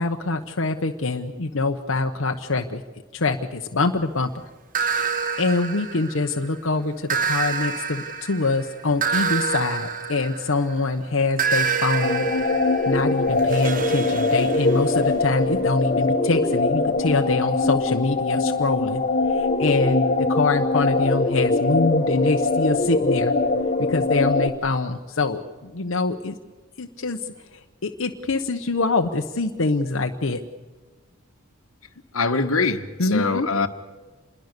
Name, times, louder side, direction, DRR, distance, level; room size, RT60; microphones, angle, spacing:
voice 1, 0.0-2.8 3.1-4.3 5.4-12.3 12.9-19.0 19.3-23.3 23.9-26.4 26.8-27.2 27.5-30.4 33.0-33.5, left 3 dB, 70° left, 1.0 m, -24 dB
sound 1, 4.7-6.5 7.1-10.8 11.4-15.1, right 5 dB, 40° right, 1.4 m, -27 dB
sound 2, 12.0-24.5, left 2 dB, 35° left, 1.4 m, -22 dB
voice 2, 32.1-33.7, left 4 dB, 90° left, 1.5 m, -23 dB
27.0 x 21.5 x 6.7 m
head